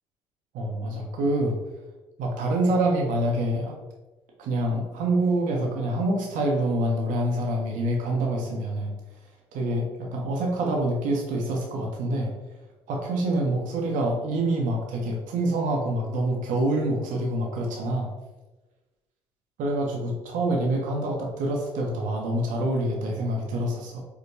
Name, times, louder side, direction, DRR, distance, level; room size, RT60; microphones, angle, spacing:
voice 1, 0.5-1.6 2.2-3.8 4.4-8.9 9.5-12.3 12.9-18.1 19.6-24.0, right 1 dB, 70° right, 0 dB, 0.6 m, -26 dB
4.5 x 2.1 x 2.6 m, 1.1 s
hypercardioid pair, 55°, 14 cm